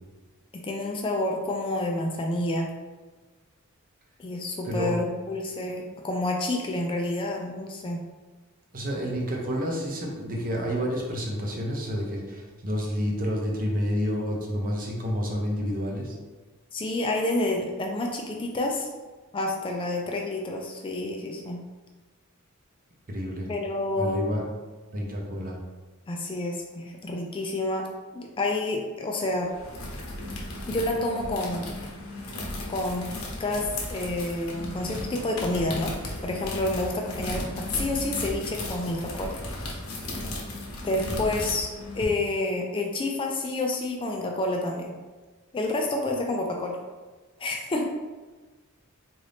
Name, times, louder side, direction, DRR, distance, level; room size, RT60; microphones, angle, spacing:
voice 1, 0.5-2.7 4.2-8.0 16.7-18.9 19.3-21.6 23.5-24.3 26.1-27.9 28.1-29.5 30.7-31.7 32.7-33.1 33.4-35.9 36.2-39.3 40.8-44.9 45.5-46.7 47.4-47.8, left 2 dB, 25° left, 1 dB, 0.3 m, -29 dB
voice 2, 4.6-4.9 8.7-16.2 23.1-23.5 24.0-24.4 24.9-25.6, equal, 40° right, -1 dB, 0.7 m, -29 dB
sound 1, 29.4-42.0, left 1 dB, 80° left, 0.8 m, -35 dB
3.8 x 2.6 x 3.4 m, 1.3 s
head